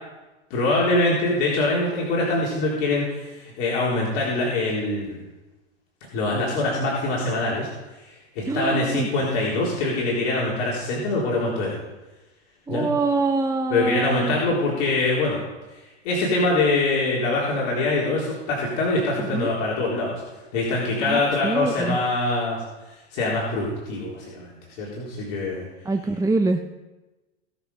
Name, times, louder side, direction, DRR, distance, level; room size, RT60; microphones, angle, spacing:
voice 1, 0.5-5.2 6.1-7.7 8.4-11.8 12.7-12.9 13.7-15.4 16.0-20.2 20.5-22.6 23.1-24.5 24.8-25.6, left 2 dB, 55° left, -4 dB, 3.9 m, -24 dB
voice 2, 8.5-9.1 12.7-14.4 19.2-19.5 21.0-22.0 25.8-26.6, right 3 dB, 10° right, 5 dB, 0.8 m, -25 dB
18.5 x 6.9 x 5.5 m, 1.1 s
hypercardioid pair, 95°, 36 cm